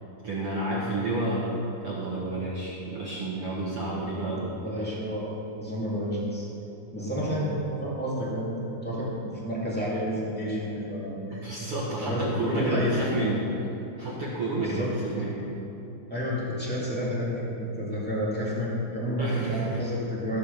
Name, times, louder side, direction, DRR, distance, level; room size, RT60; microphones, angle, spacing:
voice 1, 0.2-4.6 7.1-7.3 11.3-13.5 14.0-15.5 19.2-19.8, right 2 dB, 70° right, -7 dB, 1.3 m, -30 dB
voice 2, 4.3-6.5 6.9-8.5 8.8-11.5 11.9-12.9 14.5-14.9 16.1-20.4, equal, 5° left, -7 dB, 1.0 m, -30 dB
14.5 x 6.5 x 6.8 m, 3.0 s
omnidirectional pair, 4.9 m